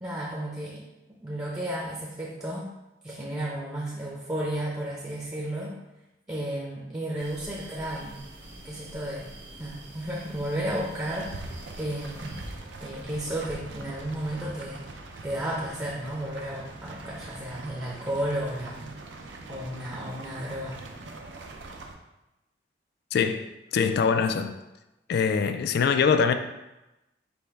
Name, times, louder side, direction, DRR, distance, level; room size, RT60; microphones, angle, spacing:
voice 1, 0.0-0.8 1.2-2.7 3.0-5.8 6.3-8.2 8.6-9.3 9.6-12.4 12.8-14.8 15.2-18.9 19.5-20.8, right 1 dB, 15° right, -5 dB, 0.6 m, -33 dB
sound 1, 7.2-12.5, right 1 dB, 90° right, 1.0 m, -46 dB
sound 2, 11.1-21.9, right 2 dB, 70° right, 0.6 m, -43 dB
voice 2, 23.1-24.6 25.1-26.3, left 6 dB, 60° left, 9 dB, 0.3 m, -23 dB
5.2 x 2.1 x 4.6 m, 0.97 s
head